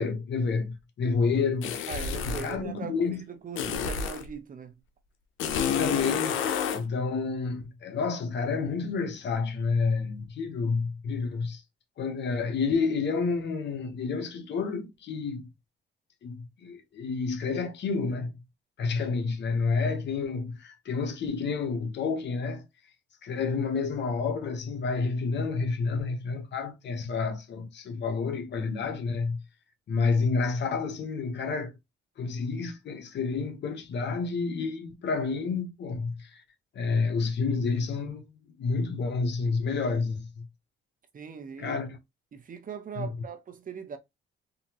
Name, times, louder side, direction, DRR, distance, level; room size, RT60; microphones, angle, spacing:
voice 1, 0.0-1.8 2.2-3.2 5.6-6.4 6.7-11.6 12.0-15.5 16.2-18.3 18.8-22.6 23.2-29.4 29.9-31.7 32.2-36.4 36.7-38.2 38.6-40.5 41.6-42.0 43.0-43.1, left 4 dB, 60° left, 1.1 m, -29 dB
sound 1, 1.6-2.6 3.6-4.3 5.4-6.8, left 7 dB, 85° left, 0.7 m, -29 dB
voice 2, 1.9-4.8 41.1-41.8 42.3-44.0, right 6 dB, 45° right, 0.9 m, -40 dB
3.9 x 2.9 x 2.9 m
cardioid pair, 90°, 20 cm